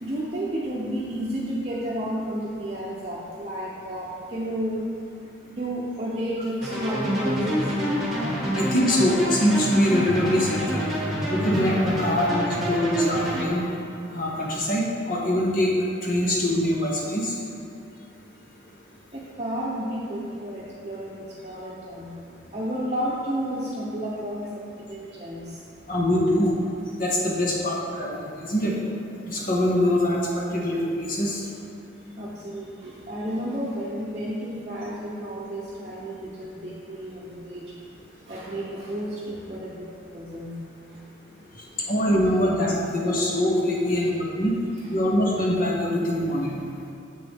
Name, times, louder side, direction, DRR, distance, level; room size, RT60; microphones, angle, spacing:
voice 1, 0.0-4.8 5.5-7.6 19.1-25.6 32.2-37.7 38.3-40.5 43.9-44.1 44.7-44.9, equal, 35° right, -7 dB, 0.7 m, -32 dB
sound 1, 6.6-13.5, equal, ahead, 1.5 m, -27 dB
voice 2, 8.5-10.9 11.3-13.6 14.1-15.7 16.0-17.3 25.9-26.5 27.0-28.7 29.3-31.4 41.9-44.5 44.9-46.6, left 1 dB, 45° left, -2 dB, 0.8 m, -23 dB
7.8 x 6.7 x 3.5 m, 2.5 s
head